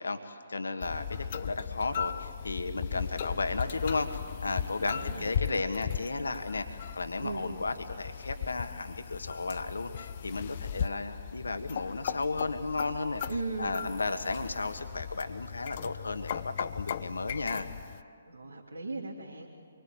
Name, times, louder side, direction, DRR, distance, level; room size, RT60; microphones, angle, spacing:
voice 1, 0.0-13.2 13.6-17.7, left 3 dB, 70° left, 7 dB, 1.6 m, -34 dB
sound 1, 0.8-18.0, left 8 dB, 40° left, 0.6 m, -37 dB
voice 2, 4.9-5.7 7.2-7.5 13.3-13.8 18.2-19.5, right 3 dB, 70° right, -1 dB, 2.8 m, -38 dB
27.0 x 24.0 x 9.0 m, 2.2 s
figure-of-eight pair, 135°, 0 cm